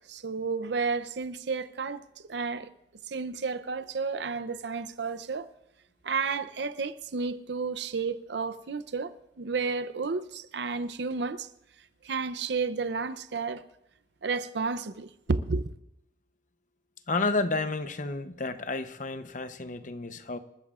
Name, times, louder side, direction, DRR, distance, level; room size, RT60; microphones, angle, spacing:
voice 1, 0.1-2.7 3.1-5.5 6.0-11.5 12.0-13.6 14.2-15.6, right 4 dB, 65° right, 0.6 m, -32 dB
voice 2, 17.1-20.4, left 3 dB, 45° left, 0.8 m, -31 dB
27.5 x 13.5 x 2.5 m
head